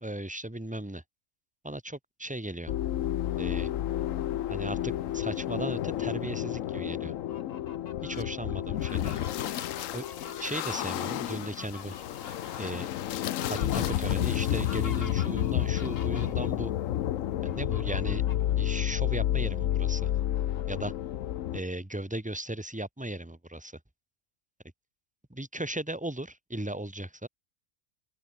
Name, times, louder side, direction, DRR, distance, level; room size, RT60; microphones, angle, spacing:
voice 1, 0.0-1.0 1.6-2.7 3.4-3.7 4.5-7.1 8.0-9.2 9.9-10.1 10.4-12.0 12.6-12.9 13.5-16.7 17.4-18.2 18.6-20.1 20.7-20.9 21.5-23.8 25.3-27.3, right 1 dB, 5° right, 1.5 m, -36 dB
sound 1, 2.7-21.6, left 12 dB, 90° left, 1.1 m, -30 dB
Fowl, 7.1-8.2 8.7-16.5 17.5-18.5 19.0-19.1 19.4-21.2, left 6 dB, 50° left, 1.5 m, -47 dB
open air
omnidirectional pair, 1.3 m